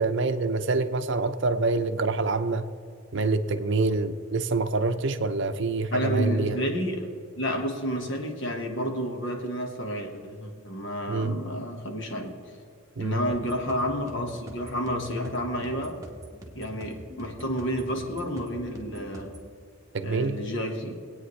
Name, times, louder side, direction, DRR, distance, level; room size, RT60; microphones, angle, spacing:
voice 1, 0.0-2.6 3.1-6.6 11.1-11.4 13.0-13.2 19.9-20.4, right 3 dB, 60° right, 9 dB, 0.6 m, -26 dB
voice 2, 5.9-7.1 7.4-12.4 13.0-16.0 16.5-19.3 20.0-21.0, equal, 60° left, 3 dB, 1.5 m, -30 dB
sound 1, 13.3-19.5, right 1 dB, 15° right, 1.2 m, -44 dB
21.0 x 8.9 x 3.2 m, 2.2 s
head